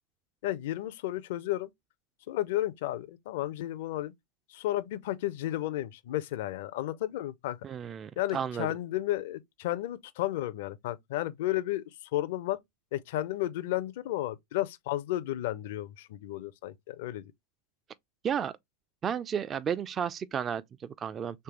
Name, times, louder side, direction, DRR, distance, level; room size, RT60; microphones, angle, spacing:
voice 1, 0.4-1.7 2.3-4.1 4.5-7.6 8.2-12.6 12.9-17.3, left 14 dB, 60° left, 0.4 m, -33 dB
voice 2, 7.6-8.7 18.2-18.5 19.0-21.4, right 8 dB, 30° right, 0.3 m, -33 dB
3.3 x 3.3 x 2.9 m
hypercardioid pair, 95°, 0 cm